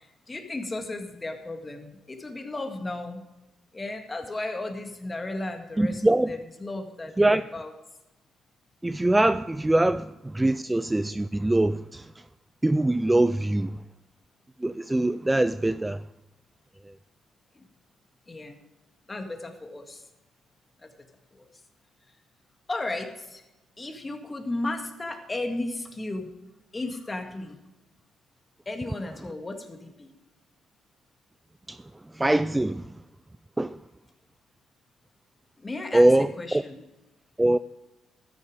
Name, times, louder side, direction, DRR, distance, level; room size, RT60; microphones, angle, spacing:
voice 1, 0.0-3.2 3.7-7.7 18.3-18.6 19.1-20.0 20.8-20.9 21.3-21.5 22.7-23.4 23.8-26.3 26.7-27.6 28.7-30.1 35.6-36.1 36.4-36.8, left 2 dB, 20° left, 1.9 m, -34 dB
voice 2, 5.8-6.3 7.2-7.4 8.8-12.1 12.6-13.8 14.6-16.0 31.7-31.8 32.1-32.9 33.6-33.8 35.9-36.6 37.4-37.6, right 1 dB, 10° right, 0.3 m, -23 dB
13.0 x 9.7 x 5.0 m
cardioid pair, 90°, 0 cm